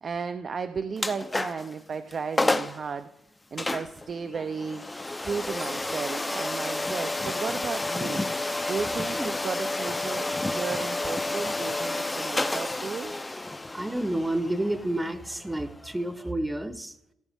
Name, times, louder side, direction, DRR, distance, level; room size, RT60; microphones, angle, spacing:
voice 1, 0.0-3.1 3.5-4.8 5.2-8.3 8.7-13.1, right 5 dB, 45° right, 9 dB, 0.6 m, -34 dB
sound 1, 1.0-1.7 2.1-2.2 2.4-2.8 3.6-16.3, left 2 dB, 15° left, 0.7 m, -30 dB
voice 2, 13.7-16.9, right 1 dB, 10° right, 11 dB, 0.9 m, -30 dB
16.5 x 7.0 x 3.6 m, 0.84 s
cardioid pair, 90°, 0 cm